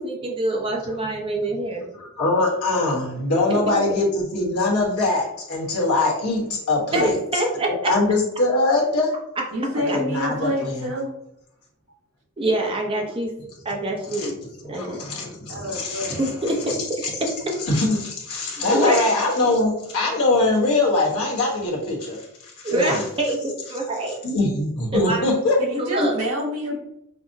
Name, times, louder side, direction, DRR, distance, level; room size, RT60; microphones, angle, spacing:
voice 1, 0.0-1.9 3.5-3.6 6.9-7.7 9.9-10.0 12.4-13.3 13.6-14.3 14.7-15.3 16.2-16.6 17.2-17.5 18.7-19.1 22.6-24.2 24.9-25.2 25.8-26.2, right 1 dB, 25° right, 0 dB, 0.6 m, -25 dB
voice 2, 2.0-7.2 7.7-9.2 9.9-10.9 13.1-13.2 14.1-14.3 14.7-16.2 17.0-17.1 17.7-22.2 22.4-23.0 24.2-25.6, left 2 dB, 75° left, -3 dB, 1.2 m, -22 dB
voice 3, 9.5-11.1 15.5-16.2 25.6-26.8, equal, 65° right, -3 dB, 1.2 m, -27 dB
5.7 x 2.0 x 2.6 m, 0.78 s
head